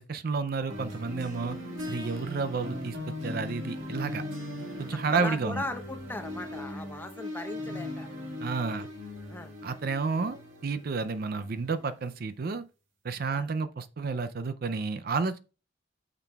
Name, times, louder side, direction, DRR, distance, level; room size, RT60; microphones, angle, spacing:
voice 1, 0.0-1.6 1.9-4.2 4.8-5.6 8.4-8.9 9.6-12.6 13.0-15.4, right 4 dB, 50° right, 0.4 m, -31 dB
sound 1, 0.7-12.2, left 1 dB, 90° right, 1.9 m, -39 dB
voice 2, 5.1-8.1 8.7-8.9 9.3-9.5 13.3-13.5, left 2 dB, 10° left, 0.8 m, -38 dB
8.9 x 5.9 x 2.3 m
head